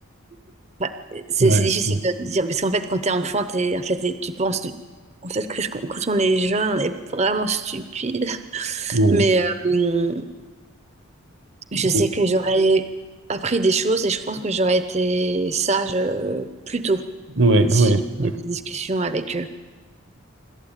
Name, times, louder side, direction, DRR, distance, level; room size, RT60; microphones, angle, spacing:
voice 1, 0.8-4.7 5.2-10.3 11.7-12.8 13.3-17.0 17.7-17.9 18.2-19.5, right 3 dB, 30° right, 10 dB, 0.8 m, -23 dB
voice 2, 8.9-9.2 11.9-12.0 17.4-18.3, right 2 dB, 55° right, 10 dB, 1.2 m, -18 dB
27.0 x 12.5 x 9.0 m, 1.4 s
head